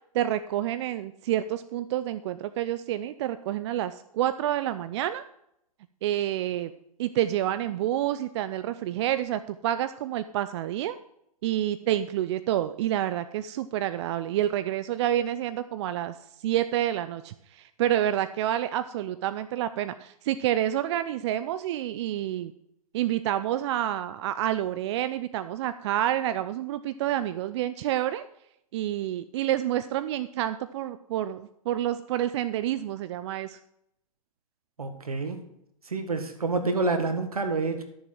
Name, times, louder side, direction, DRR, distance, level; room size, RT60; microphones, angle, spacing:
voice 1, 0.1-5.2 6.0-6.7 7.0-11.0 11.4-16.1 16.4-22.5 22.9-28.2 28.7-33.6, right 12 dB, 50° right, 12 dB, 0.6 m, -28 dB
voice 2, 34.8-35.4 35.9-37.8, right 3 dB, 90° right, 7 dB, 1.8 m, -28 dB
12.0 x 7.1 x 4.7 m, 0.77 s
hypercardioid pair, 120°, 18 cm